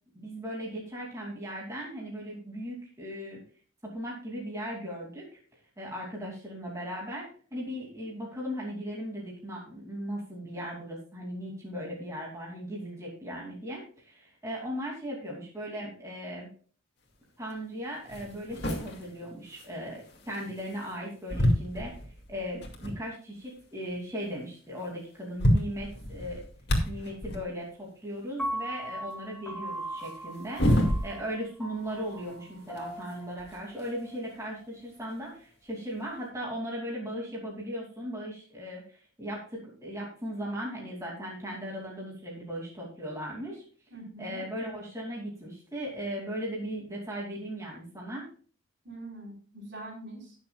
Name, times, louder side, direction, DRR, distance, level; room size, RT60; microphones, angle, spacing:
voice 1, 0.1-3.4 3.8-5.3 5.8-16.5 17.4-22.0 22.3-26.4 26.9-43.6 44.2-48.3, equal, 15° right, -4 dB, 2.8 m, -37 dB
sound 1, 17.5-17.6 18.0-21.0 21.3-23.0 23.6-23.7 23.9-24.0 24.8-24.9 25.1-27.5 30.0-31.5 31.8-34.1 35.1-35.2 36.2-36.3, equal, 55° left, 2.3 m, -30 dB
Piano, 28.4-34.6, right 1 dB, 5° left, 2.4 m, -39 dB
voice 2, 43.9-44.4 48.8-50.4, right 1 dB, 55° right, -2 dB, 4.0 m, -43 dB
19.0 x 7.2 x 2.4 m, 0.41 s
head